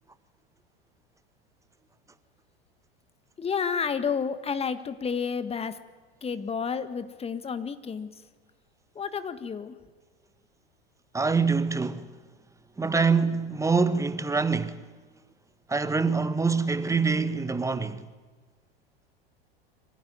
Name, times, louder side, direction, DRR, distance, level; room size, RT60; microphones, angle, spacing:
voice 1, 3.4-5.8 6.2-8.1 8.9-9.8, left 6 dB, 20° left, 1.7 m, -30 dB
voice 2, 11.1-12.2 12.8-14.9 15.7-18.1, right 4 dB, 10° right, 1.3 m, -25 dB
25.5 x 15.5 x 9.7 m
figure-of-eight pair, 80°, 30 cm